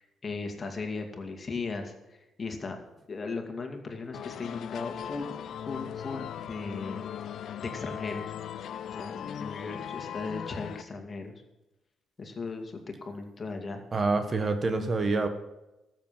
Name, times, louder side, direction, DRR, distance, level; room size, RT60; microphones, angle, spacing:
voice 1, 0.0-2.8 3.1-5.3 5.7-7.0 7.6-8.3 8.9-11.4 12.2-13.8, left 4 dB, 35° left, 4 dB, 2.3 m, -37 dB
sound 1, 4.1-10.8, left 9 dB, 70° left, 0.6 m, -38 dB
voice 2, 13.9-15.3, right 3 dB, 35° right, 8 dB, 1.4 m, -26 dB
13.5 x 7.7 x 7.4 m, 0.98 s
cardioid pair, 90°, 0 cm